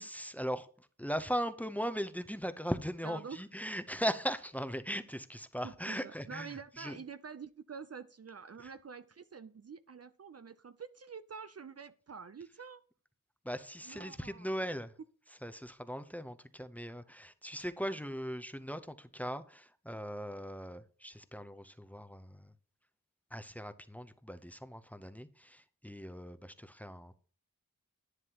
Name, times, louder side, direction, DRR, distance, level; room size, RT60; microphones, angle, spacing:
voice 1, 0.0-7.0 8.6-8.7 13.4-14.9 15.4-22.5 23.3-27.1, equal, 5° left, 0.7 m, -39 dB
voice 2, 3.0-3.4 5.6-12.8 13.9-14.5, right 6 dB, 45° right, 0.5 m, -47 dB
11.0 x 9.7 x 3.0 m
wide cardioid pair, 80°, 34 cm